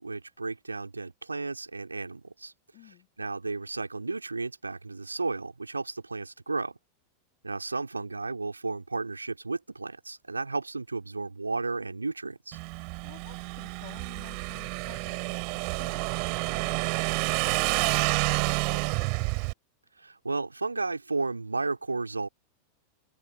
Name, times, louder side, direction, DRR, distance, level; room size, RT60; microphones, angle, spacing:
voice 1, 0.0-2.5 2.8-6.8 7.4-12.6 20.0-22.3, right 3 dB, 80° right, 2.6 m, -33 dB
voice 2, 2.7-3.1 13.0-16.8 17.3-19.2, left 35 dB, 45° left, 7.1 m, -51 dB
Motorcycle / Engine, 12.5-19.5, right 39 dB, 45° right, 3.8 m, -29 dB
open air
figure-of-eight pair, 90°, 0 cm